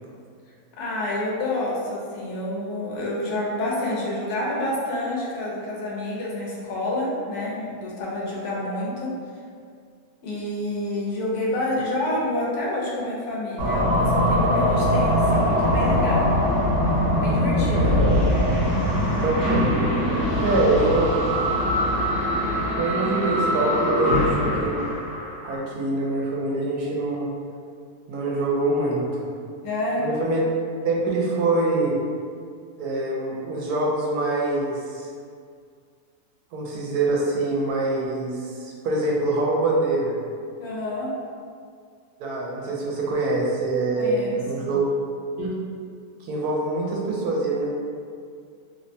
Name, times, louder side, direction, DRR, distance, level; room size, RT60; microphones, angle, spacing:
voice 1, 0.8-9.1 10.2-16.3 17.2-18.0 20.3-20.6 29.6-30.1 40.6-41.1 44.0-44.7, left 1 dB, 80° left, -4 dB, 1.2 m, -28 dB
sound 1, 13.6-25.6, equal, 50° right, 1.1 m, -22 dB
voice 2, 19.2-19.7 20.4-21.1 22.8-24.8 25.4-27.3 28.1-29.3 30.0-30.4 30.8-31.9 32.8-35.0 36.5-40.1 42.2-44.8 45.4-45.5 46.3-47.7, right 2 dB, 85° right, -3 dB, 1.1 m, -24 dB
2.9 x 2.1 x 2.6 m, 2.2 s
omnidirectional pair, 1.6 m